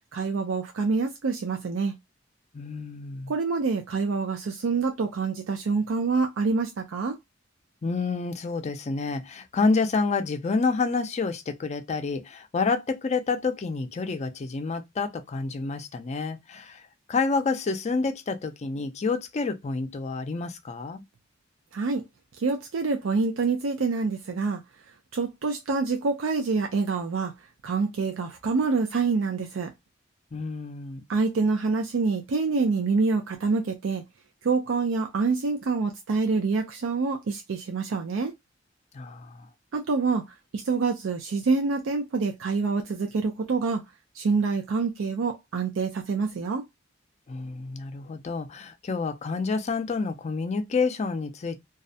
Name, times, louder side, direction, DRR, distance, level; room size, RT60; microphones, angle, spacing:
voice 1, 0.1-1.9 3.3-7.2 21.7-22.0 22.4-24.6 25.1-27.3 27.6-29.7 31.1-34.0 34.4-38.3 39.7-43.9 44.1-46.6, right 4 dB, 85° right, 0.4 m, -26 dB
voice 2, 2.5-3.3 7.8-16.8 17.1-21.0 30.3-31.0 38.9-39.5 47.3-51.6, left 4 dB, 35° left, 0.4 m, -28 dB
2.3 x 2.1 x 2.6 m
head